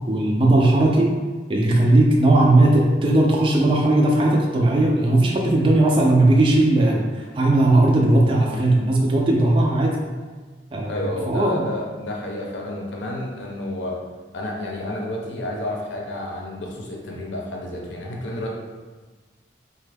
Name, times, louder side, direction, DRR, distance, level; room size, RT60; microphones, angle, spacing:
voice 1, 0.1-1.1 1.5-10.0 10.7-11.6, right 2 dB, 25° right, -1 dB, 0.3 m, -18 dB
voice 2, 10.9-14.0 14.3-18.5, left 1 dB, 75° left, -1 dB, 0.6 m, -30 dB
4.2 x 2.2 x 3.3 m, 1.4 s
head